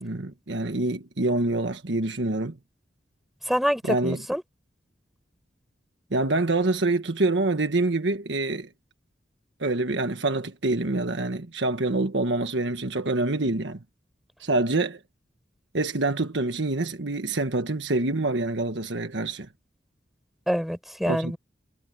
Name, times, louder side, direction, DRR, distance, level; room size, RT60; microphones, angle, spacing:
voice 1, 0.0-2.6 3.9-4.2 6.1-8.7 9.6-13.8 14.4-15.0 15.7-19.5 21.1-21.3, right 2 dB, 90° right, 1.4 m, -26 dB
voice 2, 3.5-4.4 20.5-21.4, equal, ahead, 5.2 m, -26 dB
head